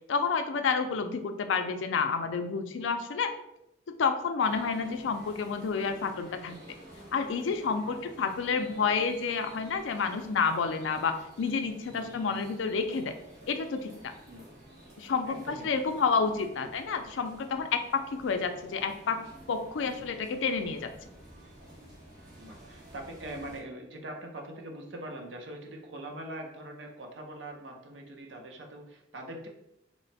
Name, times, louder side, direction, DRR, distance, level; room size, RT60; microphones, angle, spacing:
voice 1, 0.1-3.3 4.0-6.6 7.1-13.1 13.5-14.1 15.0-19.2 19.5-20.9, left 5 dB, 75° left, 7 dB, 0.4 m, -29 dB
sound 1, 4.4-23.6, right 1 dB, 45° right, 1.3 m, -51 dB
voice 2, 11.8-12.2 14.3-14.5 15.2-15.8 16.6-16.7 19.8-20.1 22.4-29.5, right 1 dB, 70° right, 2 dB, 0.7 m, -43 dB
3.0 x 2.1 x 4.0 m, 0.84 s
head